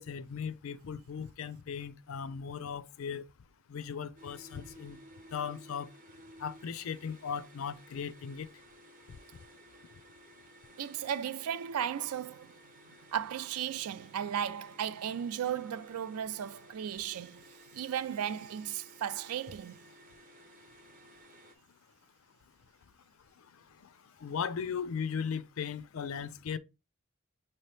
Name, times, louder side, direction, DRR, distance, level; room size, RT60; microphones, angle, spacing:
voice 1, 0.0-3.2 3.7-5.0 5.3-5.9 6.4-8.5 23.8-23.9 24.2-26.6, left 6 dB, 65° left, 0.4 m, -37 dB
sound 1, 4.2-21.5, right 1 dB, 35° right, 0.8 m, -56 dB
voice 2, 10.8-12.6 13.1-19.8, right 9 dB, 80° right, 0.4 m, -35 dB
5.7 x 2.8 x 3.3 m
head